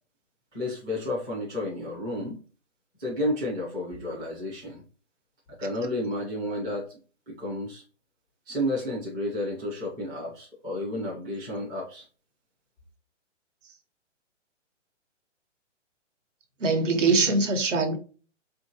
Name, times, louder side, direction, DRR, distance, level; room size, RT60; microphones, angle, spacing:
voice 1, 0.5-2.4 3.0-4.8 5.6-7.0 7.3-7.8 8.5-12.1, left 1 dB, 5° right, 0.3 m, -31 dB
voice 2, 16.6-18.0, right 3 dB, 75° right, 1.2 m, -22 dB
4.4 x 2.8 x 2.7 m
hypercardioid pair, 140°, 37 cm